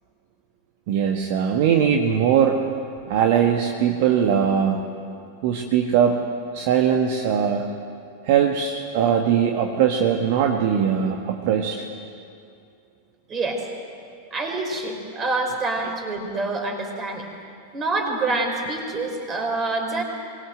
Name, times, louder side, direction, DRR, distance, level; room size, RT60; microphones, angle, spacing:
voice 1, 0.9-2.6 3.1-4.8 5.4-6.2 6.5-7.7 8.2-11.8, right 8 dB, 50° right, 3 dB, 1.6 m, -20 dB
voice 2, 13.3-13.7 14.3-17.3 17.7-20.0, right 3 dB, 25° right, 3 dB, 4.9 m, -26 dB
24.0 x 20.5 x 7.9 m, 2.4 s
figure-of-eight pair, 90°, 0 cm